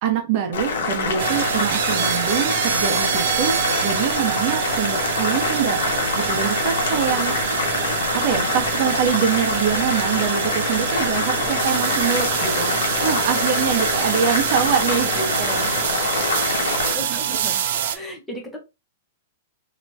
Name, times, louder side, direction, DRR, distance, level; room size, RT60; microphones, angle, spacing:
voice 1, 0.0-5.8 6.1-7.4 8.1-12.7 13.0-15.7, right 8 dB, 35° right, 0.9 m, -24 dB
Boiling, 0.5-16.9, left 4 dB, 85° left, 1.1 m, -25 dB
sound 1, 1.2-18.0, right 9 dB, 55° right, 0.4 m, -25 dB
voice 2, 16.9-17.6 17.9-18.6, left 1 dB, 5° left, 0.8 m, -35 dB
3.3 x 3.0 x 2.6 m
supercardioid pair, 165°, 0 cm